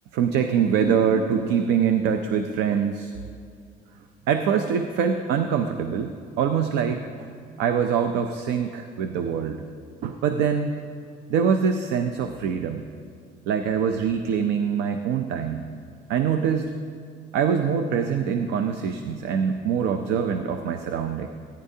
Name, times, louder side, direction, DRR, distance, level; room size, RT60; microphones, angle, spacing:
voice 1, 0.1-3.1 4.3-7.3 7.6-9.6 10.0-10.7 11.3-12.9 13.5-15.7 16.1-16.7 17.3-21.3, right 7 dB, 85° right, 7 dB, 0.5 m, -24 dB
17.5 x 9.9 x 2.7 m, 2.3 s
cardioid pair, 110°, 17 cm